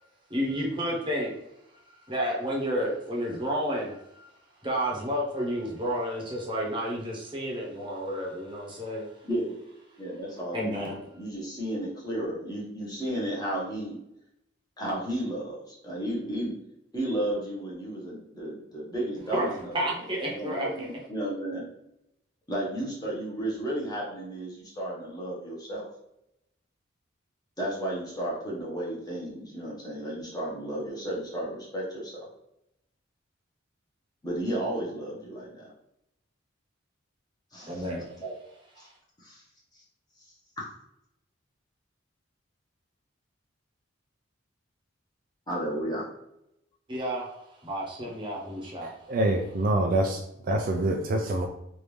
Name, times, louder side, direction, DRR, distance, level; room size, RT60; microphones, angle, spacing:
voice 1, 0.3-1.3 2.1-4.3 4.6-9.1 10.5-10.9 19.3-19.4 19.7-20.9 37.7-38.1 46.9-47.3 47.6-48.9, equal, 25° right, -3 dB, 0.9 m, -31 dB
voice 2, 10.0-10.9 11.1-14.0 14.8-16.6 16.9-19.7 20.3-21.6 22.5-25.8 27.6-32.3 34.2-35.7 37.5-37.8 38.2-38.4 38.8-38.9 39.2-39.4 39.7-39.8 45.5-46.1, right 1 dB, 20° left, -5 dB, 1.0 m, -33 dB
voice 3, 49.1-51.5, right 1 dB, 45° right, 3 dB, 0.3 m, -26 dB
3.4 x 2.6 x 3.1 m, 0.80 s
head